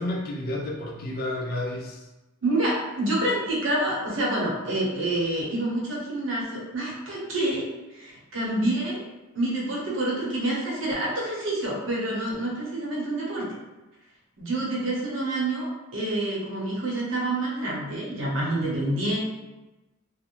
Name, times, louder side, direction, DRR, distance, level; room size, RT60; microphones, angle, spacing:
voice 1, 0.0-2.0, left 1 dB, 50° left, -1 dB, 0.5 m, -31 dB
voice 2, 2.4-9.0 9.3-13.5 14.4-19.2, right 1 dB, 70° right, -5 dB, 0.8 m, -27 dB
2.4 x 2.0 x 2.9 m, 1.1 s
head